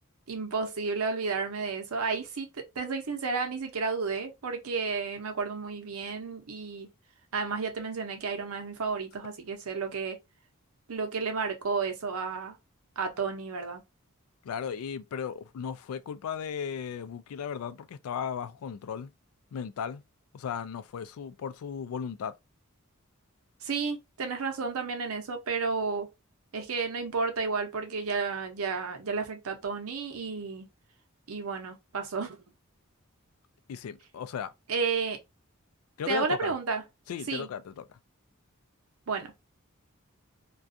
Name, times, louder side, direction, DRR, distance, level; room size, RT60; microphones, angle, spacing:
voice 1, 0.3-6.9 7.3-10.2 10.9-12.6 13.0-13.8 23.6-26.1 26.5-30.7 31.3-32.4 34.7-35.2 36.1-36.8 37.3-37.5 39.1-39.3, right 4 dB, 80° right, 0.7 m, -32 dB
voice 2, 14.4-19.1 19.5-20.0 20.3-22.3 33.7-34.5 36.0-36.5 37.1-38.0, left 7 dB, 90° left, 0.3 m, -36 dB
2.4 x 2.3 x 2.5 m
head